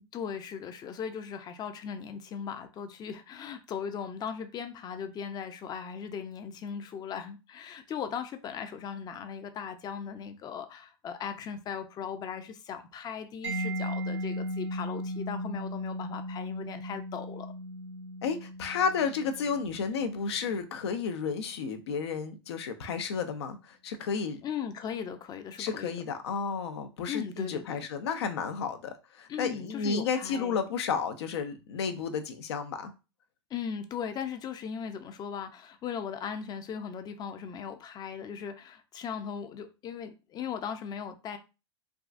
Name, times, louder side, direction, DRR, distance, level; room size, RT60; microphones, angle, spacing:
voice 1, 0.1-17.5 24.4-25.9 27.1-27.8 29.3-30.6 33.5-41.4, left 7 dB, 30° left, 0.5 m, -38 dB
Mallet percussion, 13.4-21.0, equal, 85° right, 1.2 m, -37 dB
voice 2, 18.2-24.4 25.6-32.9, left 5 dB, 75° left, 0.6 m, -32 dB
3.5 x 2.4 x 2.5 m
hypercardioid pair, 105°, 14 cm